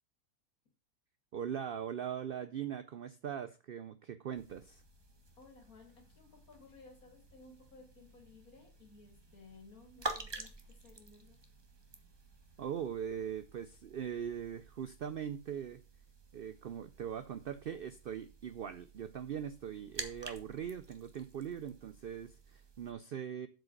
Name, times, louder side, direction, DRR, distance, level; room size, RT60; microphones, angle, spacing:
voice 1, 1.3-4.8 12.6-15.8 16.3-23.5, right 8 dB, 65° right, 11 dB, 0.5 m, -41 dB
sound 1, 4.3-22.9, right 2 dB, 20° right, 0.8 m, -50 dB
voice 2, 5.4-11.4, left 3 dB, 70° left, 1 dB, 3.4 m, -58 dB
7.8 x 5.0 x 6.4 m, 0.33 s
omnidirectional pair, 1.6 m